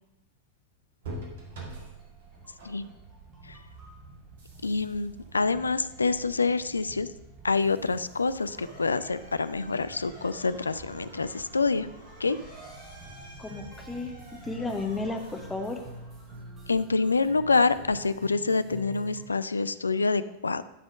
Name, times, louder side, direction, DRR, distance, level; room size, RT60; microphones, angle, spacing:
sound 1, 1.0-16.7, right 2 dB, 60° right, 1.9 m, -48 dB
sound 2, 1.1-19.2, equal, 25° right, 2.9 m, -50 dB
voice 1, 4.6-7.1 7.4-11.9 12.2-12.4 16.7-20.6, left 4 dB, 75° left, 14 dB, 0.3 m, -26 dB
Motor vehicle (road) / Siren, 7.9-16.5, right 1 dB, 75° right, 3.4 m, -51 dB
voice 2, 13.4-14.1 14.4-15.8, left 3 dB, 10° left, 3 dB, 1.1 m, -33 dB
11.0 x 4.2 x 6.1 m, 0.91 s
figure-of-eight pair, 90°, 0 cm